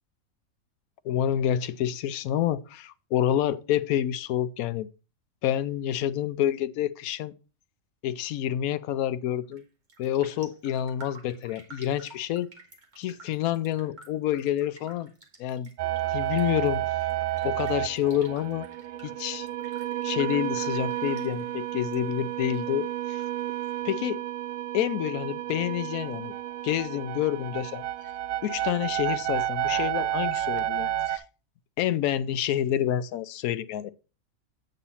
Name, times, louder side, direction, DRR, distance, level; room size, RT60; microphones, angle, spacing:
voice 1, 1.0-4.9 5.4-7.3 8.0-9.6 10.0-12.5 13.0-15.1 15.4-15.7 16.1-16.8 17.4-18.7 19.0-19.5 20.0-23.2 23.8-24.2 24.7-26.3 26.6-27.9 28.4-31.2 31.8-33.9, left 11 dB, 90° left, 1.0 m, -28 dB
Raindrop, 9.4-9.6 9.9-22.0 22.2-23.2 23.6-23.7, right 2 dB, 35° right, 1.6 m, -52 dB
sound 1, 15.8-31.2, right 13 dB, 75° right, 0.5 m, -31 dB
8.4 x 4.0 x 5.5 m
omnidirectional pair, 1.5 m